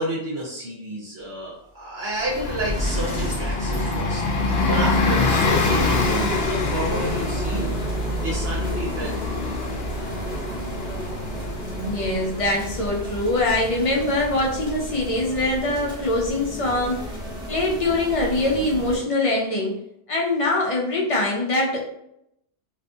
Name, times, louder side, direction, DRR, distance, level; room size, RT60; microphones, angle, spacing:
voice 1, 0.0-4.2 4.7-7.7 8.2-9.8, right 1 dB, 70° right, -6 dB, 1.0 m, -30 dB
Sliding door, 2.1-2.2 2.5-4.8, equal, 40° right, 0.8 m, -31 dB
Bus, 2.2-14.5, left 3 dB, 70° left, 0.8 m, -26 dB
sound 1, 5.6-19.0, equal, 5° right, 0.6 m, -33 dB
voice 2, 11.8-17.0 17.5-19.7 20.1-21.9, left 2 dB, 45° left, -1 dB, 0.4 m, -23 dB
2.6 x 2.4 x 2.3 m, 0.77 s
omnidirectional pair, 1.1 m